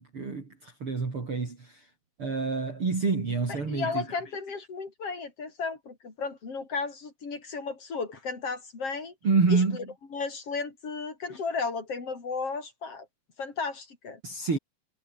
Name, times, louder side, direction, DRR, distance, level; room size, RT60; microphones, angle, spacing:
voice 1, 0.0-1.9 2.2-4.0 9.2-9.8 14.2-14.6, right 4 dB, 35° right, 4.7 m, -27 dB
voice 2, 3.7-9.1 9.5-9.8 10.1-13.1 13.4-14.2, left 4 dB, 40° left, 5.5 m, -34 dB
omnidirectional pair, 4.1 m